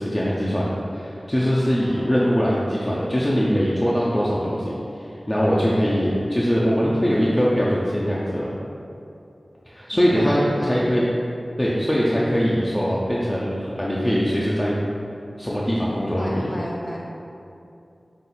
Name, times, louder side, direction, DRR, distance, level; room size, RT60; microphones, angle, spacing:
voice 1, 0.0-8.5 9.7-11.0 11.6-14.8 15.4-16.5, equal, 20° left, -6 dB, 0.5 m, -22 dB
voice 2, 1.3-2.1 9.9-10.8 16.0-17.0, equal, 40° left, -5 dB, 1.2 m, -33 dB
5.7 x 2.4 x 3.9 m, 2.7 s
wide cardioid pair, 65°, 0 cm